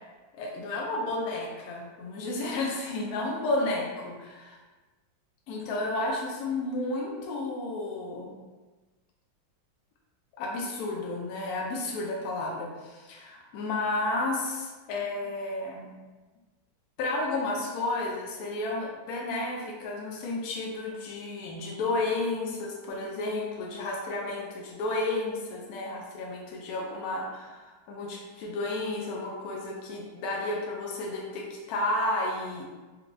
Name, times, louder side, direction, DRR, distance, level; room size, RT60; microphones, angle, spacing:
voice 1, 0.3-4.6 5.5-8.3 10.4-16.0 17.0-32.7, left 2 dB, 75° left, -2 dB, 0.8 m, -32 dB
4.0 x 2.3 x 2.6 m, 1.3 s
omnidirectional pair, 2.1 m